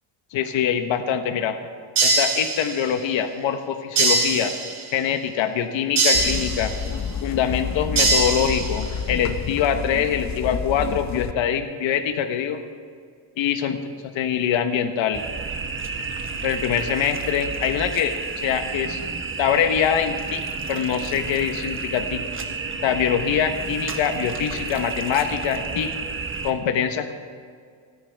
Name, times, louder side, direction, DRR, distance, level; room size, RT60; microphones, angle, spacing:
voice 1, 0.3-1.6 2.0-4.5 4.9-6.7 7.2-12.6 13.4-15.2 16.4-19.0 19.4-20.4 20.7-22.3 22.8-25.9 26.4-27.1, left 8 dB, 65° left, 7 dB, 1.2 m, -24 dB
sound 1, 2.0-3.0 4.0-5.0 6.0-7.0 8.0-9.0, right 3 dB, 55° right, 4.6 m, -22 dB
sound 2, 6.1-11.3, left 7 dB, 35° left, 0.7 m, -29 dB
sound 3, 15.1-26.5, right 4 dB, 25° right, 1.2 m, -31 dB
29.5 x 10.5 x 3.5 m, 2.1 s
cardioid pair, 120°, 49 cm